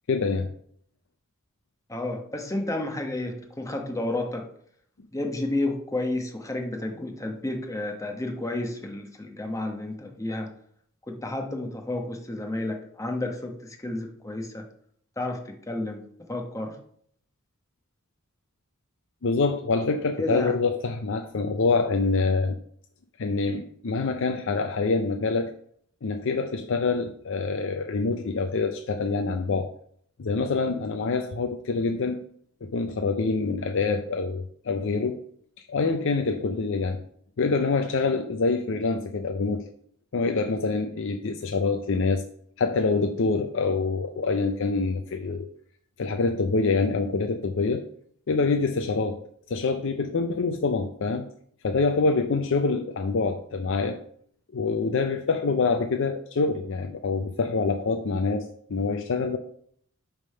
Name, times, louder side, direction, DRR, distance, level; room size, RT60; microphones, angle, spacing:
voice 1, 0.1-0.5 19.2-22.6 23.2-25.5 26.0-29.7 30.2-32.2 32.6-35.2 35.7-37.0 37.4-39.6 40.1-42.2 42.6-45.5 46.0-47.9 48.3-49.2 49.5-51.3 51.6-54.0 54.5-59.4, left 4 dB, 65° left, 5 dB, 0.5 m, -26 dB
voice 2, 1.9-4.5 5.1-10.5 11.1-14.6 15.2-16.0 16.3-16.7 20.2-20.5, left 2 dB, 15° left, 3 dB, 1.0 m, -31 dB
8.2 x 3.6 x 5.5 m, 0.64 s
head